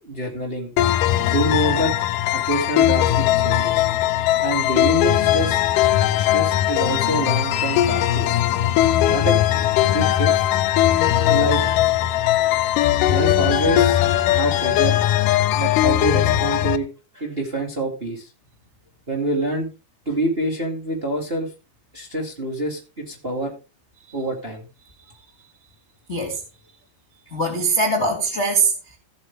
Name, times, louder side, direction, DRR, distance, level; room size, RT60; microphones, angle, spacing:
voice 1, 0.0-0.7 1.3-1.9 2.3-3.9 4.4-5.6 6.1-8.4 9.1-9.4 9.9-10.5 11.2-11.6 13.1-15.0 15.5-16.9 17.1-18.3 19.1-19.7 20.0-21.5 21.9-23.5 24.1-24.7, right 1 dB, 25° right, 1.3 m, -26 dB
sound 1, 0.8-16.8, left 12 dB, 85° left, 1.8 m, -19 dB
voice 2, 26.1-26.4 27.3-29.0, right 3 dB, 50° left, 0.8 m, -22 dB
15.5 x 7.8 x 3.4 m
omnidirectional pair, 4.7 m